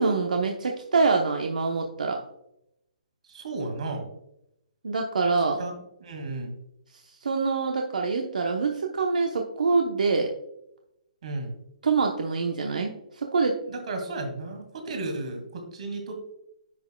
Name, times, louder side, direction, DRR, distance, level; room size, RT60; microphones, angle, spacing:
voice 1, 0.0-2.2 4.8-5.6 7.2-10.3 11.8-13.6, right 4 dB, 85° right, 2 dB, 0.9 m, -25 dB
voice 2, 3.3-4.1 5.6-6.6 11.2-11.5 13.7-16.3, right 2 dB, 60° right, 4 dB, 2.2 m, -34 dB
10.5 x 6.1 x 2.3 m, 0.82 s
hypercardioid pair, 155°, 4 cm